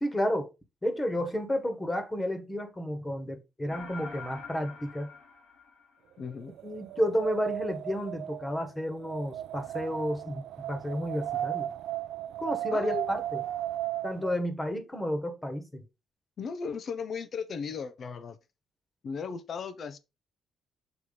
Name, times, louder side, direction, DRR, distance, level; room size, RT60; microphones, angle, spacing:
voice 1, 0.0-0.5 0.8-5.1 6.6-11.7 12.4-13.4 14.0-15.9, equal, 15° left, 1.6 m, -31 dB
sound 1, 3.7-6.3, left 5 dB, 85° left, 3.5 m, -45 dB
voice 2, 6.2-6.5 12.7-13.2 16.4-18.4 19.0-20.0, left 5 dB, 55° left, 0.8 m, -36 dB
Wind, 6.4-14.4, right 12 dB, 80° right, 0.4 m, -36 dB
6.9 x 3.2 x 5.4 m
cardioid pair, 90°, 0 cm